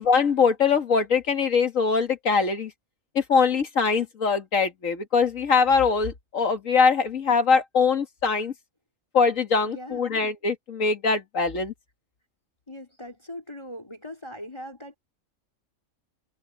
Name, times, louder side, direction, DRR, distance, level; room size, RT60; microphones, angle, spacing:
voice 1, 0.0-2.7 3.2-8.5 9.1-11.7, left 5 dB, 75° left, 2.2 m, -22 dB
voice 2, 9.6-10.1 12.7-15.0, left 1 dB, 20° left, 3.6 m, -40 dB
omnidirectional pair, 1.4 m